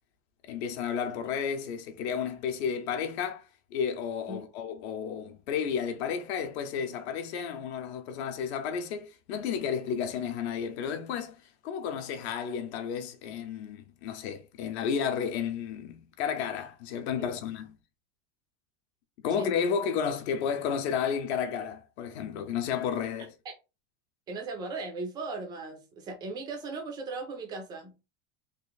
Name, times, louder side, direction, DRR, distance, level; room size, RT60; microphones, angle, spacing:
voice 1, 0.4-3.4 3.7-17.8 19.2-23.3, left 7 dB, 55° left, 0.8 m, -32 dB
voice 2, 24.3-28.0, right 3 dB, 10° right, 0.4 m, -37 dB
3.1 x 2.5 x 3.9 m
supercardioid pair, 175°, 38 cm